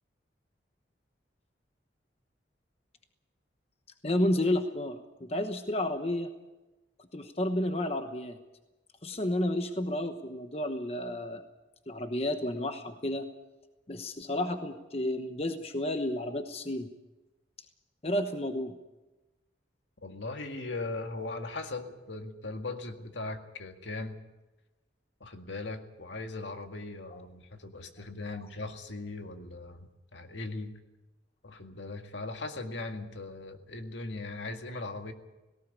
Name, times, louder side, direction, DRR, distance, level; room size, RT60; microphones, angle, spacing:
voice 1, 4.0-6.3 7.1-8.4 9.0-11.4 11.9-13.3 13.9-16.9 18.0-18.7 27.1-27.2, left 1 dB, 30° left, 7 dB, 1.1 m, -31 dB
voice 2, 20.0-24.2 25.2-30.7 31.4-35.1, left 3 dB, 75° left, 5 dB, 1.9 m, -39 dB
18.0 x 18.0 x 8.4 m, 1.1 s
head